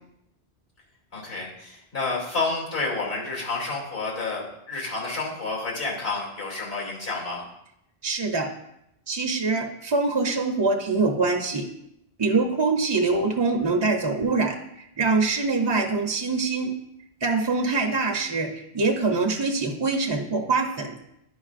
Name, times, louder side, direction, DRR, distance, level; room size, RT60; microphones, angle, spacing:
voice 1, 1.1-7.4, left 3 dB, 75° left, -5 dB, 2.8 m, -30 dB
voice 2, 8.0-8.5 9.1-11.7 12.2-14.6 15.0-16.7 17.2-20.9, right 3 dB, 35° right, 2 dB, 0.4 m, -24 dB
10.0 x 5.2 x 2.5 m, 0.80 s
omnidirectional pair, 1.1 m